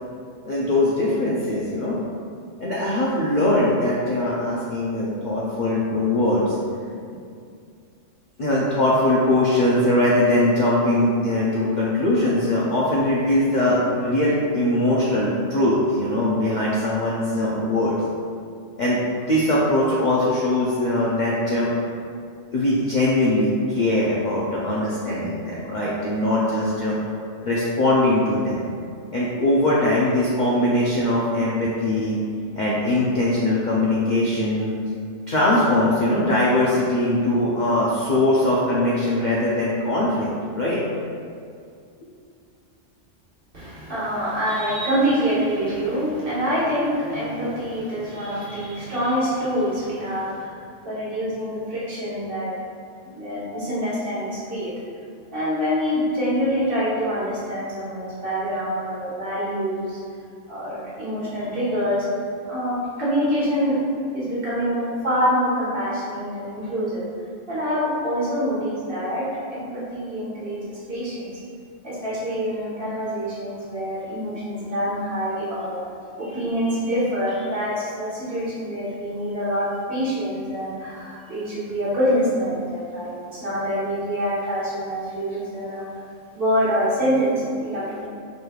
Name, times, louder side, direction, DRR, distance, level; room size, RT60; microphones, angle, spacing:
voice 1, 0.4-2.0 2.6-6.5 8.4-18.0 18.8-21.7 22.5-27.0 27.4-28.7 29.1-32.2 32.6-34.7 35.3-40.3 40.5-40.8, left 1 dB, 55° left, -7 dB, 0.5 m, -21 dB
voice 2, 43.5-50.5 50.8-52.5 53.1-54.7 55.3-60.0 60.5-62.0 62.4-67.0 67.5-71.4 71.8-75.8 76.2-85.9 86.3-88.1, equal, 45° right, -10 dB, 1.4 m, -25 dB
5.0 x 3.1 x 2.3 m, 2.3 s
omnidirectional pair, 1.3 m